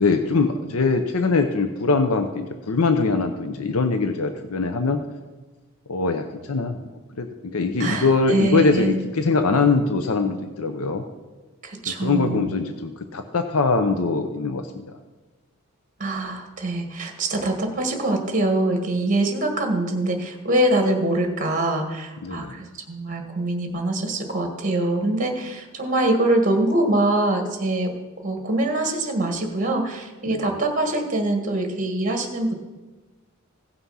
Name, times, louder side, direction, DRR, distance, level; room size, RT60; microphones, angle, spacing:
voice 1, 0.0-5.0 5.9-6.8 7.2-11.0 12.0-15.0 22.2-22.6 30.3-30.6, left 4 dB, 90° left, 7 dB, 0.7 m, -22 dB
voice 2, 7.8-8.9 11.6-12.5 16.0-27.9 28.2-32.5, right 2 dB, 40° right, 4 dB, 1.6 m, -24 dB
16.0 x 5.9 x 5.6 m, 1.2 s
head